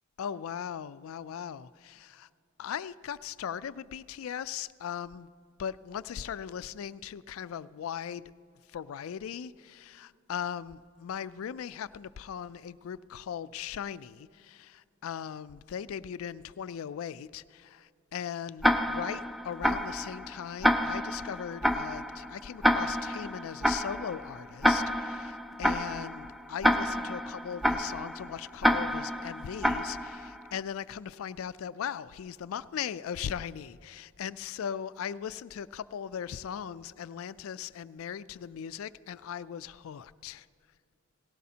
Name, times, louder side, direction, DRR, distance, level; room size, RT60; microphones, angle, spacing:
voice 1, 0.2-1.7 2.1-2.3 2.6-5.3 5.6-8.3 8.7-40.5, left 8 dB, 75° left, 16 dB, 0.3 m, -39 dB
Tick-tock, 18.6-30.5, equal, ahead, 0.3 m, -29 dB
18.0 x 16.5 x 2.8 m, 2.3 s
head